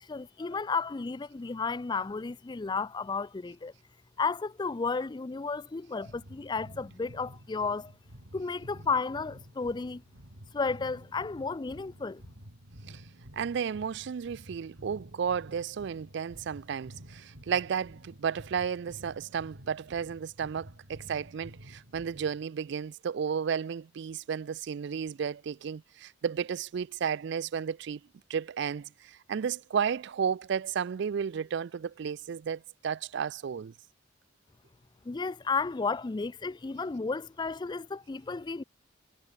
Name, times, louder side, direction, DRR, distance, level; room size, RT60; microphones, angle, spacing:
voice 1, 0.0-3.7 4.2-7.9 8.3-10.0 10.5-12.2 35.0-38.6, left 4 dB, 20° left, 0.4 m, -33 dB
sound 1, 6.0-22.4, equal, 75° right, 6.5 m, -50 dB
voice 2, 13.3-28.0 28.3-33.7, right 7 dB, 60° right, 0.4 m, -33 dB
head